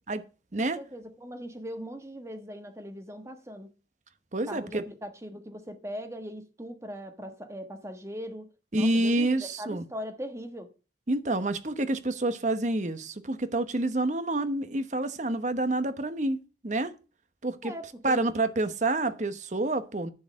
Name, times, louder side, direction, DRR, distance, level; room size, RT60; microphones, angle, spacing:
voice 1, 0.6-3.7 4.5-8.5 8.7-10.7 17.6-18.2, equal, 15° right, 1.3 m, -40 dB
voice 2, 4.3-4.8 8.7-9.8 11.1-16.4 16.6-16.9 17.4-17.7 18.0-20.1, right 2 dB, 45° right, 1.0 m, -28 dB
11.0 x 4.7 x 7.4 m
head